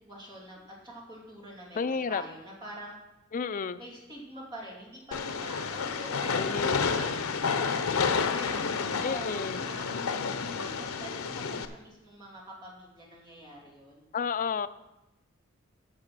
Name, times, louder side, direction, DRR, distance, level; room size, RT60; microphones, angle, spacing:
voice 1, 0.0-3.0 3.8-7.7 8.3-14.1, right 1 dB, 20° right, -5 dB, 2.7 m, -45 dB
voice 2, 1.7-2.2 3.3-3.8 6.4-7.3 9.0-9.6 14.1-14.7, left 5 dB, 40° left, 12 dB, 0.4 m, -32 dB
Train, 5.1-11.6, left 5 dB, 80° left, 0.7 m, -30 dB
10.5 x 6.5 x 6.1 m, 0.98 s
head